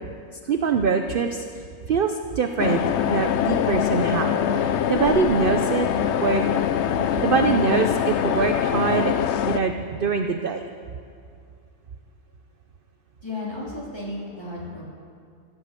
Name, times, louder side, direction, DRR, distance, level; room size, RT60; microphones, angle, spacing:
voice 1, 0.3-2.8 3.1-5.9 6.2-6.4 7.2-9.1 9.4-10.7, right 5 dB, 50° right, 6 dB, 0.7 m, -24 dB
sound 1, 2.6-9.6, left 9 dB, 65° left, 0.7 m, -23 dB
voice 2, 13.2-14.8, left 2 dB, 15° left, -6 dB, 3.6 m, -33 dB
16.0 x 9.5 x 7.7 m, 2.4 s
omnidirectional pair, 1.6 m